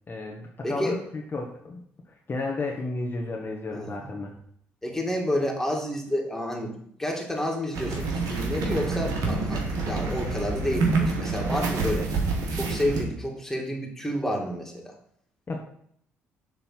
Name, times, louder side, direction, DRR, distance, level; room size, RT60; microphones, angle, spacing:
voice 1, 0.1-1.8 2.3-4.3 15.5-15.7, left 3 dB, 35° left, -1 dB, 1.3 m, -32 dB
voice 2, 0.6-1.0 3.7-4.1 4.8-6.7 7.0-12.1 12.5-14.9, left 1 dB, 5° left, 0 dB, 2.4 m, -30 dB
sound 1, 7.7-13.0, right 3 dB, 65° right, 1.7 m, -27 dB
7.1 x 3.8 x 5.9 m, 0.66 s
hypercardioid pair, 55°, 6 cm